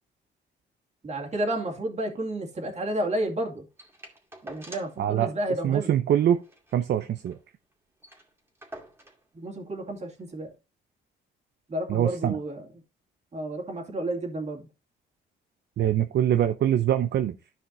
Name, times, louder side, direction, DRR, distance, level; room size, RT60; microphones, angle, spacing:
voice 1, 1.0-3.7 4.4-5.9 9.3-10.5 11.7-12.6 13.3-14.7, right 1 dB, 35° right, 2.4 m, -31 dB
sound 1, 3.8-5.1 5.4-5.5 5.8-5.9 6.3-7.4 7.7-7.8 8.0-9.3 10.1-10.2, right 1 dB, 10° right, 2.3 m, -47 dB
voice 2, 5.0-5.3 5.6-6.4 6.7-7.4 11.9-12.4 15.8-17.4, right 10 dB, 60° right, 0.6 m, -23 dB
13.0 x 5.0 x 2.6 m
cardioid pair, 90°, 20 cm